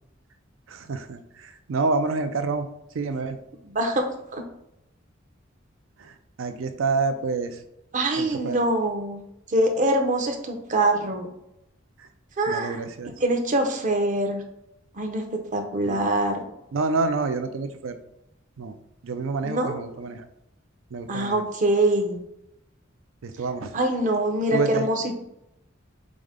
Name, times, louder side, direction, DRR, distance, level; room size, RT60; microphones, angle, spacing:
voice 1, 0.7-2.7 2.9-3.4 6.0-7.6 8.2-8.6 12.0-12.1 12.5-13.2 15.9-16.0 16.7-18.0 18.6-18.7 19.0-20.3 20.9-21.5 23.2-23.7 24.5-24.9, right 4 dB, 80° right, 9 dB, 0.4 m, -28 dB
voice 2, 3.6-4.1 4.3-4.4 7.9-9.2 9.5-11.3 12.4-12.8 13.2-14.4 14.9-15.2 15.5-16.4 19.4-19.7 21.1-22.2 23.7-25.1, right 1 dB, 40° right, 3 dB, 0.7 m, -24 dB
4.9 x 2.1 x 3.6 m, 0.83 s
head